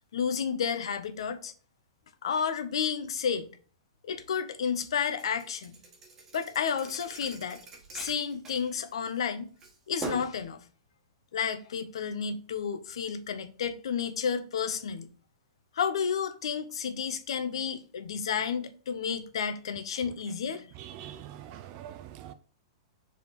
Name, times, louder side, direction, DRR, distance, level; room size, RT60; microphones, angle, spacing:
voice 1, 0.1-1.5 2.2-3.5 4.0-5.8 6.3-7.6 7.9-9.5 9.9-10.6 11.3-15.1 15.7-20.7, left 7 dB, 80° left, 0.9 m, -31 dB
Thump thud, 5.2-9.2 9.6-10.4, right 4 dB, 15° right, 1.3 m, -43 dB
voice 2, 20.8-22.3, right 11 dB, 30° right, 0.4 m, -44 dB
4.7 x 3.8 x 5.2 m
supercardioid pair, 170°, 3 cm